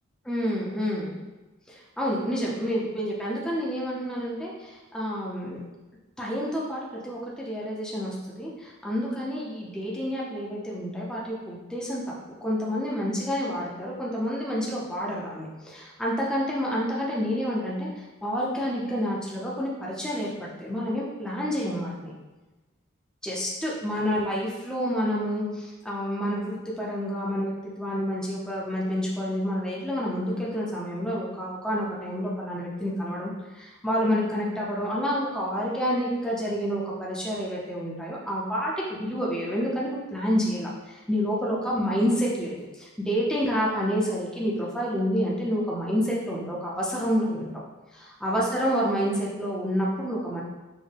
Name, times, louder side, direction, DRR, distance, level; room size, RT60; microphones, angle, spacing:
voice 1, 0.2-1.2 1.7-5.6 6.2-12.1 12.4-22.1 23.2-47.5 47.9-50.4, equal, 5° left, -5 dB, 0.6 m, -29 dB
6.4 x 2.1 x 3.3 m, 1.2 s
head